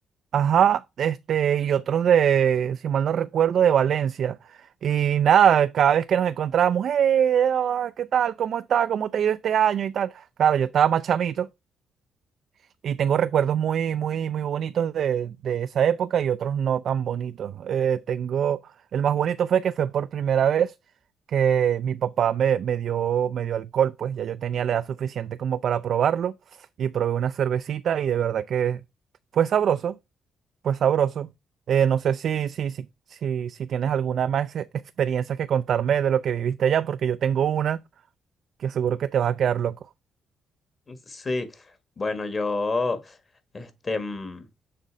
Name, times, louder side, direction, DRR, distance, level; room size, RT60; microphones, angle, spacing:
voice 1, 0.3-4.4 4.8-10.1 10.4-11.5 12.8-18.6 18.9-20.7 21.3-26.3 26.8-28.8 29.3-29.9 30.6-31.3 31.7-32.8 33.1-34.6 35.0-37.8 38.6-39.8, right 9 dB, 65° right, 0.3 m, -23 dB
voice 2, 40.9-41.5 42.0-43.1 43.5-44.4, left 3 dB, 35° left, 1.5 m, -28 dB
6.7 x 3.6 x 5.0 m
cardioid pair, 90°, 0 cm